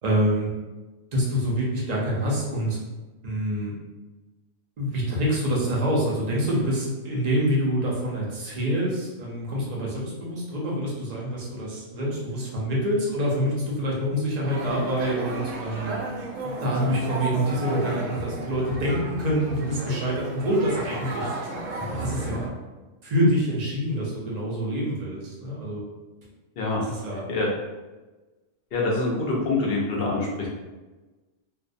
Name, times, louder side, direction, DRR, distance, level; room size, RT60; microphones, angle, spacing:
voice 1, 0.0-0.5 1.1-2.8 3.2-3.7 4.8-16.0 16.4-21.3 21.9-22.5 23.0-25.8 26.7-27.2, equal, 45° right, -5 dB, 0.6 m, -26 dB
sound 1, 14.5-22.5, right 2 dB, 80° right, 0.9 m, -33 dB
voice 2, 28.7-30.5, left 2 dB, 60° left, -3 dB, 0.7 m, -25 dB
2.5 x 2.0 x 2.5 m, 1.2 s
omnidirectional pair, 1.3 m